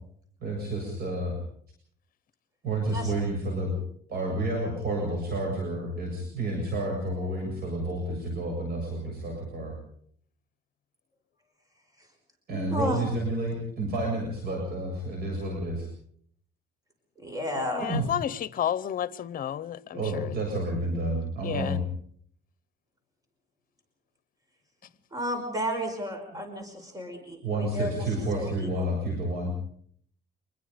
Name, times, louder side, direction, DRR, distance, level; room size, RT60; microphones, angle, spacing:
voice 1, 0.4-1.4 2.6-3.7 4.1-9.7 12.5-15.9 17.9-18.0 19.9-21.8 26.3-26.4 27.4-29.5, right 1 dB, 60° right, 7.5 m, -30 dB
voice 2, 12.7-13.0 17.2-17.9 25.1-28.1 28.3-28.9, equal, 20° right, 5.4 m, -32 dB
voice 3, 17.8-20.3 21.4-21.8, left 10 dB, 50° left, 1.0 m, -31 dB
26.5 x 21.0 x 5.3 m
cardioid pair, 120°, 18 cm